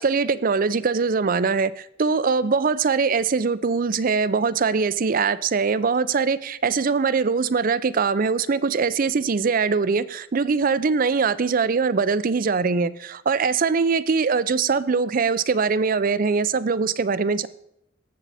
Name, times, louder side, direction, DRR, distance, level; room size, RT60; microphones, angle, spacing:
voice 1, 0.0-17.5, right 5 dB, 45° right, 16 dB, 0.5 m, -22 dB
18.0 x 7.3 x 4.2 m, 0.77 s
head